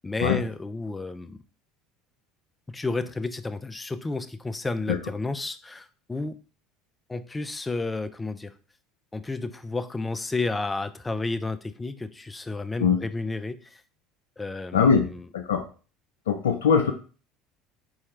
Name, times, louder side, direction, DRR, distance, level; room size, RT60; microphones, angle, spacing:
voice 1, 0.0-1.4 2.7-6.4 7.1-8.5 9.1-13.8 14.4-15.2, left 3 dB, 15° left, 11 dB, 0.5 m, -31 dB
voice 2, 14.7-15.1 15.3-15.6 16.3-16.9, left 6 dB, 90° left, 6 dB, 0.4 m, -21 dB
4.3 x 3.6 x 3.2 m, 0.37 s
hypercardioid pair, 75°, 0 cm